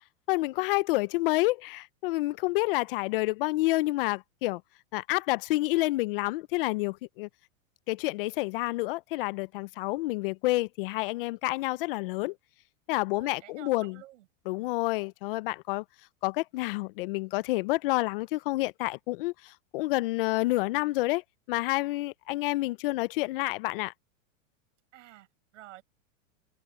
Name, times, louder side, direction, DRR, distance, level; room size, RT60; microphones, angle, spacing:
voice 1, 0.3-4.6 4.9-7.3 7.9-12.3 12.9-13.9 14.5-15.8 16.2-19.3 19.7-21.2 21.5-23.9, left 20 dB, 45° left, 0.5 m, -29 dB
voice 2, 13.1-14.3 24.9-25.8, right 15 dB, 70° right, 6.0 m, -51 dB
supercardioid pair, 155°, 39 cm